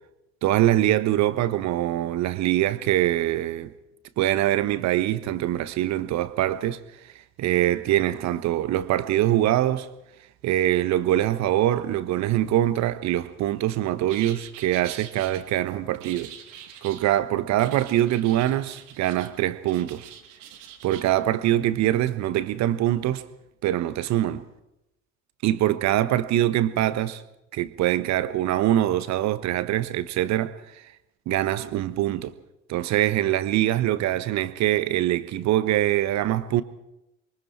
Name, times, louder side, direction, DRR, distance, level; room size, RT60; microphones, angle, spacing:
voice 1, 0.4-3.7 4.2-6.8 7.4-9.9 10.4-16.3 16.8-20.1 20.8-23.2 23.6-24.4 25.4-27.2 27.5-30.5 31.3-32.3 32.7-36.6, right 13 dB, 45° right, 1.3 m, -23 dB
sound 1, 14.1-15.4 16.0-17.1 17.6-19.3 19.6-21.1, right 9 dB, 65° right, 2.5 m, -44 dB
27.0 x 23.5 x 4.4 m
figure-of-eight pair, 70°, 39 cm